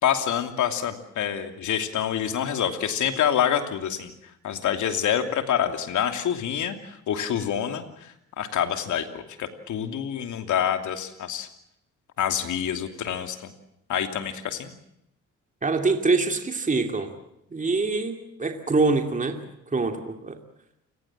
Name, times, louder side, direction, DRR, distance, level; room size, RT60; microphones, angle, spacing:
voice 1, 0.0-4.1 4.4-11.5 12.2-13.5 13.9-14.7, left 9 dB, 75° left, 7 dB, 2.9 m, -27 dB
voice 2, 15.6-17.1 17.5-18.1 18.4-19.4 19.7-20.4, right 3 dB, 25° right, 5 dB, 2.8 m, -24 dB
29.5 x 19.0 x 7.5 m, 0.79 s
cardioid pair, 90°, 30 cm